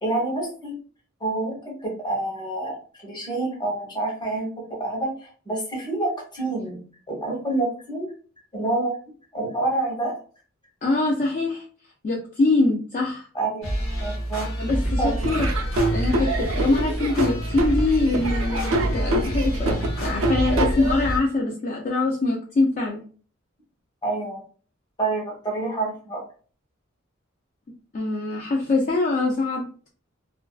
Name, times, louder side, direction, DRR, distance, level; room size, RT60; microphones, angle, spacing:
voice 1, 0.0-0.7 1.2-8.1 8.5-8.9 9.3-10.2 13.3-14.5 15.0-15.1 24.0-24.4 25.0-26.2, right 2 dB, 20° left, -1 dB, 0.8 m, -28 dB
voice 2, 10.8-11.6 12.0-13.3 14.6-15.5 15.9-23.0 27.9-29.6, left 2 dB, 40° left, -2 dB, 0.4 m, -23 dB
sound 1, 13.6-21.2, equal, 85° left, 1.1 m, -27 dB
Laughter / Drum, 15.2-21.2, right 2 dB, 75° right, 0.5 m, -26 dB
2.4 x 2.3 x 2.3 m, 0.41 s
head